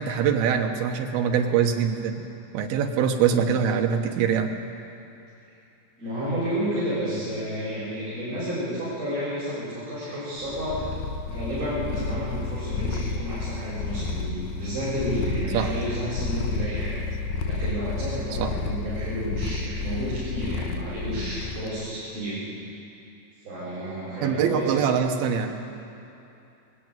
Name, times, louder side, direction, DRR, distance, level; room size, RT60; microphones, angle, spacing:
voice 1, 0.0-2.2 2.5-4.6 15.5-15.7 18.4-18.5 24.2-25.6, right 7 dB, 80° right, 4 dB, 3.1 m, -23 dB
voice 2, 6.0-10.8 11.3-17.0 17.4-22.4 23.4-24.7, equal, 40° right, -12 dB, 7.0 m, -31 dB
Purr, 10.4-21.7, left 4 dB, 75° left, 1.9 m, -31 dB
20.5 x 14.5 x 9.1 m, 2.8 s
omnidirectional pair, 4.4 m